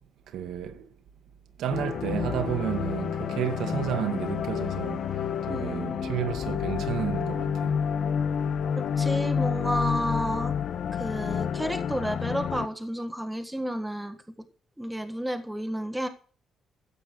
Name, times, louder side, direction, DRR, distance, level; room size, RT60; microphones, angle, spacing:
voice 1, 0.3-0.9 1.6-7.8, right 9 dB, 85° right, 1.9 m, -32 dB
sound 1, 1.7-12.7, left 7 dB, 55° left, 1.0 m, -29 dB
voice 2, 5.5-6.2 8.7-10.5 10.9-14.2 14.8-16.1, equal, 5° right, 1.6 m, -31 dB
14.5 x 8.6 x 6.3 m
cardioid pair, 160°, 0 cm